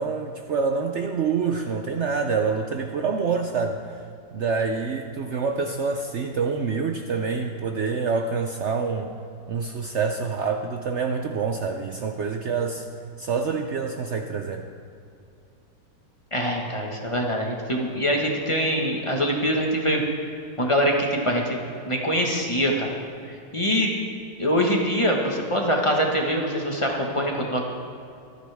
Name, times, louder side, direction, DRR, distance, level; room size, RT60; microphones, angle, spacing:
voice 1, 0.0-4.0 4.3-9.1 9.5-12.9 13.2-14.7, right 5 dB, 85° right, 5 dB, 0.6 m, -26 dB
voice 2, 16.3-20.0 20.6-21.6 21.8-23.0 23.2-23.9 24.4-27.7, equal, 20° left, 0 dB, 1.3 m, -24 dB
25.0 x 9.5 x 3.5 m, 2.5 s
omnidirectional pair, 2.0 m